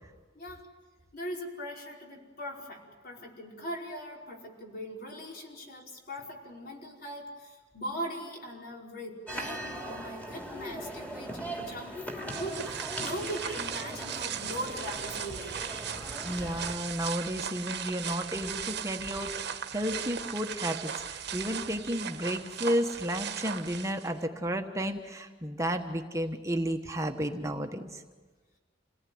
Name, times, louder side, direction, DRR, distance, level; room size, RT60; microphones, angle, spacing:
voice 1, 0.3-0.7 1.1-12.0 12.2-15.6 22.2-22.3, equal, 55° left, -1 dB, 5.1 m, -40 dB
sound 1, 9.3-16.8, right 1 dB, 10° left, 2.8 m, -40 dB
sound 2, 12.3-24.2, right 8 dB, 60° right, 1.3 m, -37 dB
voice 2, 16.2-28.0, equal, 15° right, 4 dB, 1.2 m, -32 dB
28.0 x 18.5 x 9.4 m, 1.3 s
head